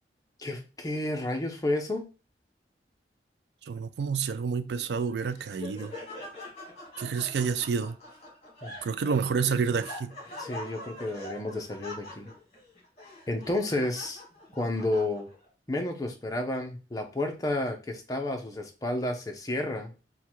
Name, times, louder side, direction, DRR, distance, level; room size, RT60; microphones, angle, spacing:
voice 1, 0.4-2.0 8.6-8.9 10.4-12.3 13.3-14.2 14.5-15.3 15.7-19.9, left 1 dB, 20° left, 0.6 m, -31 dB
voice 2, 3.6-5.9 7.0-8.0 8.8-10.2, right 6 dB, 75° right, 0.4 m, -29 dB
Laughter, 4.9-15.5, left 1 dB, 35° left, 1.6 m, -44 dB
3.6 x 2.2 x 4.4 m
head